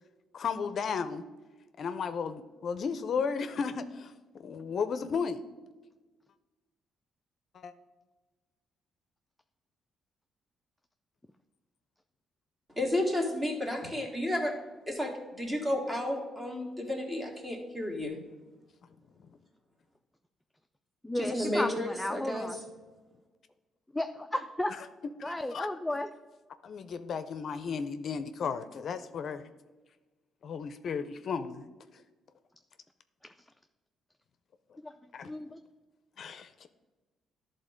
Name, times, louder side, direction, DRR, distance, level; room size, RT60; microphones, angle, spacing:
voice 1, 0.3-1.3 1.8-5.4 7.5-7.7 19.2-19.3 24.8-24.9 25.2-25.7 26.6-29.4 30.4-31.7 34.7-34.8 35.1-35.3 36.2-36.7, left 6 dB, 55° left, 10 dB, 0.5 m, -34 dB
voice 2, 12.8-14.5 14.9-15.1 15.4-18.2 21.1-22.5, left 1 dB, 20° right, 1 dB, 2.0 m, -32 dB
voice 3, 21.0-22.6 23.9-24.7 25.2-26.1 34.8-34.9 35.2-35.6, left 1 dB, 5° left, 6 dB, 0.4 m, -33 dB
11.5 x 3.8 x 5.1 m, 1.3 s
cardioid pair, 90°, 0 cm